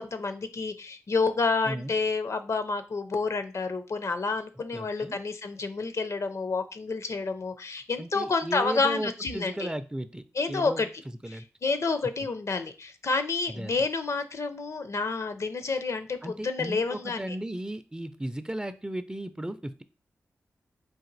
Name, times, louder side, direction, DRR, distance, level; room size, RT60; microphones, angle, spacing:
voice 1, 0.0-9.7 10.3-10.9 11.3-17.4, left 4 dB, 60° left, 9 dB, 0.5 m, -29 dB
voice 2, 4.7-5.2 8.0-10.8 11.2-11.5 13.5-13.7 16.2-19.8, right 1 dB, 15° right, 11 dB, 0.4 m, -35 dB
4.1 x 2.5 x 3.9 m, 0.34 s
cardioid pair, 40°, 6 cm